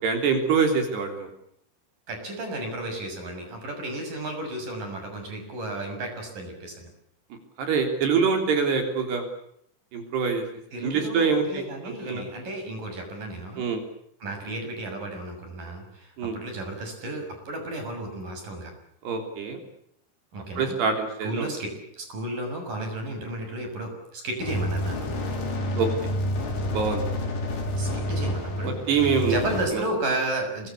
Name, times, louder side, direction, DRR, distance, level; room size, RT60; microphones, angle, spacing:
voice 1, 0.0-1.3 7.6-9.3 9.9-10.5 10.8-11.6 12.0-12.2 13.6-13.8 16.2-16.4 19.1-19.6 20.6-21.5 25.8-25.9 26.7-27.0 28.9-29.4 29.7-29.8, right 5 dB, 65° right, 5 dB, 5.4 m, -24 dB
voice 2, 2.1-6.9 10.7-13.7 14.2-18.7 20.3-20.8 21.2-21.7 22.0-25.1 27.8-28.7 29.2-30.7, right 1 dB, 45° right, 4 dB, 8.2 m, -33 dB
sound 1, 24.4-29.6, left 1 dB, 70° left, 7.3 m, -29 dB
26.5 x 23.0 x 8.4 m, 0.72 s
omnidirectional pair, 5.2 m